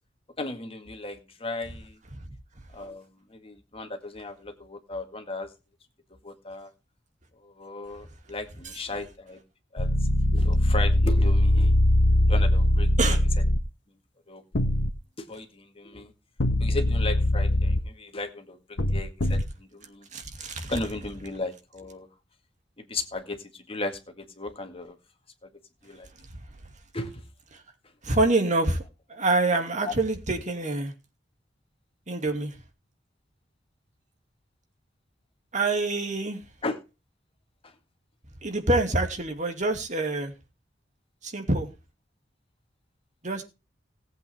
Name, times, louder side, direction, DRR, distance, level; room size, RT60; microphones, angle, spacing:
voice 1, 0.4-2.0 2.7-5.5 6.2-6.7 7.4-9.4 9.7-9.9 10.3-11.8 12.3-13.2 14.3-14.4 15.2-16.1 16.6-20.1 20.7-22.1 22.8-25.0 25.4-25.5 25.8-26.1 26.9-27.1 29.8-29.9 36.6-36.8 37.6-37.7, left 2 dB, 30° left, 1.9 m, -36 dB
sound 1, 9.8-13.6 14.5-14.9 16.4-17.8 18.8-19.4, left 1 dB, 80° left, 1.2 m, -21 dB
voice 2, 20.1-20.7 28.0-28.8 29.1-30.9 32.1-32.5 35.5-36.4 38.4-40.3 41.2-41.7 43.2-43.4, right 2 dB, 45° right, 2.5 m, -26 dB
18.5 x 8.2 x 3.5 m
head